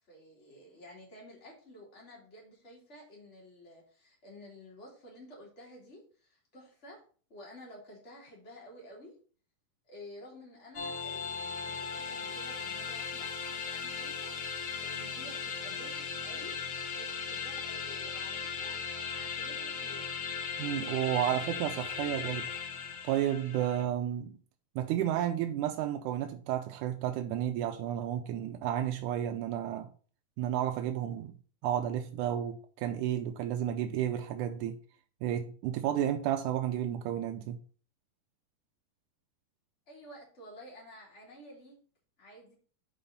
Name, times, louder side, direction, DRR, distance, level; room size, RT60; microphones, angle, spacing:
voice 1, 0.1-7.0 7.3-9.1 9.9-16.6 16.9-20.2 39.9-41.8 42.2-42.5, equal, 20° left, 3.2 m, -52 dB
sound 1, 10.7-23.8, left 6 dB, 85° left, 1.1 m, -37 dB
voice 2, 20.6-22.5 23.0-24.4 24.8-29.9 30.4-31.3 31.6-34.8 35.2-37.6, right 11 dB, 80° right, 1.9 m, -32 dB
6.8 x 5.5 x 5.3 m
omnidirectional pair, 4.1 m